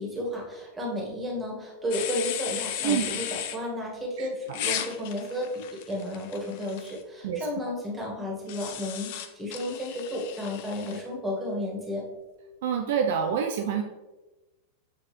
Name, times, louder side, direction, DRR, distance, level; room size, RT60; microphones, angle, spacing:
voice 1, 0.0-12.0, left 1 dB, 10° right, -2 dB, 1.9 m, -33 dB
sound 1, 1.9-3.6 4.5-7.0 8.5-11.0, left 10 dB, 50° left, 0.5 m, -35 dB
voice 2, 2.8-3.2 4.2-4.6 7.2-7.5 12.6-13.8, right 7 dB, 55° right, 3 dB, 0.5 m, -27 dB
7.6 x 4.7 x 3.2 m, 1.1 s
figure-of-eight pair, 90°, 0 cm